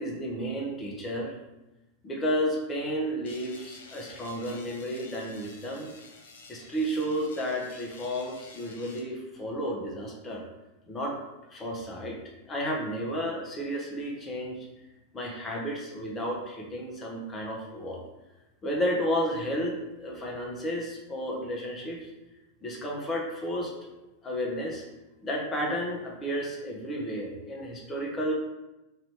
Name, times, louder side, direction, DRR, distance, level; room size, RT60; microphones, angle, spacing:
voice 1, 0.0-1.3 2.0-5.9 6.5-10.4 10.9-11.2 11.5-12.2 12.5-14.7 15.1-18.0 18.6-22.1 22.6-23.7 24.2-24.8 25.2-28.3, equal, 20° left, -2 dB, 0.8 m, -32 dB
sound 1, 3.2-9.0, left 3 dB, 60° left, 0.5 m, -50 dB
3.0 x 2.6 x 3.3 m, 1.0 s
figure-of-eight pair, 90°, 0 cm